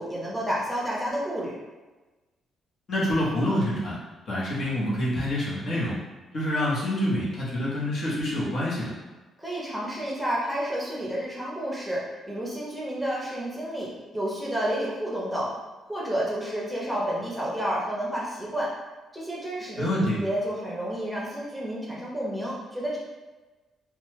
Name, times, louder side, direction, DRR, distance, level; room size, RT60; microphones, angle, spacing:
voice 1, 0.0-1.5 9.4-15.5 15.9-18.7 19.1-23.0, equal, ahead, -5 dB, 0.8 m, -30 dB
voice 2, 2.9-4.0 4.3-6.0 6.3-8.9 19.8-20.2, left 1 dB, 55° left, -6 dB, 1.1 m, -26 dB
3.0 x 2.3 x 3.1 m, 1.2 s
cardioid pair, 90°, 0 cm